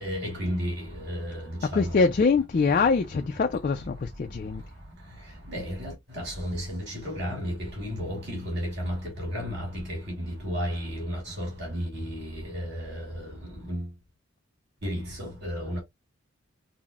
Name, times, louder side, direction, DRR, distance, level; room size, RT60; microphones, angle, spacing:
voice 1, 0.0-0.7 1.0-1.4 1.7-2.1 5.5-6.8 7.0-10.0 10.4-13.3 13.7-13.8 14.8-15.8, equal, 50° right, 2.2 m, -32 dB
voice 2, 1.7-4.6, left 4 dB, 40° left, 0.3 m, -24 dB
5.7 x 2.0 x 2.3 m
head